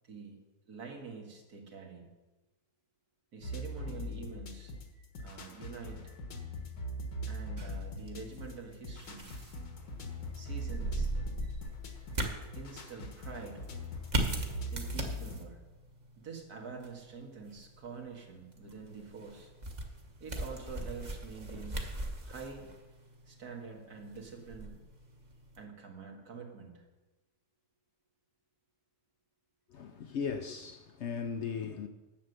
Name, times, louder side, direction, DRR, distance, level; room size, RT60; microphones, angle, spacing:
voice 1, 0.1-0.4 0.7-2.1 3.3-4.7 5.2-6.1 7.3-9.3 10.3-11.1 12.5-13.6 14.7-15.6 16.2-19.5 20.2-21.9 22.2-22.7 23.3-24.8 25.6-26.8, right 5 dB, 80° right, 2.2 m, -46 dB
sound 1, 3.4-15.4, equal, 75° left, 1.8 m, -41 dB
sound 2, 7.6-25.6, right 1 dB, 30° right, 1.2 m, -40 dB
voice 2, 29.7-31.9, left 6 dB, 60° left, 0.8 m, -37 dB
10.0 x 7.7 x 6.6 m
omnidirectional pair, 1.6 m